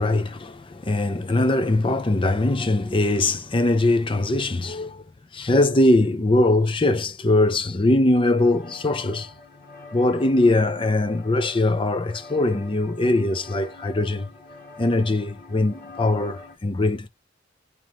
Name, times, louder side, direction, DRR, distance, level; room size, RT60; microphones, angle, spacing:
voice 1, 0.0-5.0 5.3-9.3 9.9-14.3 14.8-17.1, left 2 dB, 30° left, 0.6 m, -21 dB
sound 1, 8.4-16.6, left 3 dB, 45° left, 0.9 m, -45 dB
3.7 x 3.1 x 3.2 m
head